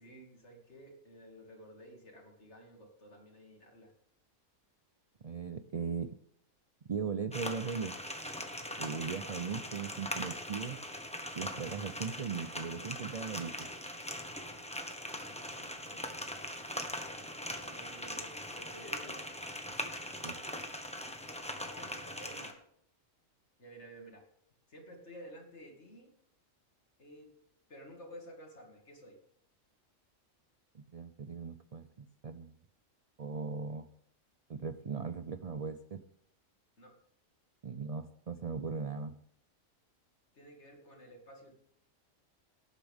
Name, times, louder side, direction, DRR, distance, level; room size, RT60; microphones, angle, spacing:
voice 1, 0.0-3.9 15.3-16.0 17.4-19.2 21.4-22.6 23.6-24.2 24.7-26.1 27.0-27.3 27.7-29.2 36.8-37.0 40.3-41.5, equal, 55° left, 1 dB, 2.6 m, -52 dB
voice 2, 5.2-6.2 6.9-8.0 8.8-10.8 11.3-13.7 20.2-20.4 30.7-32.5 33.2-33.9 34.5-36.0 37.6-39.2, right 5 dB, 50° right, 10 dB, 0.4 m, -38 dB
sound 1, 7.3-22.5, left 1 dB, 5° left, 1.1 m, -41 dB
18.5 x 8.2 x 3.6 m, 0.67 s
omnidirectional pair, 1.4 m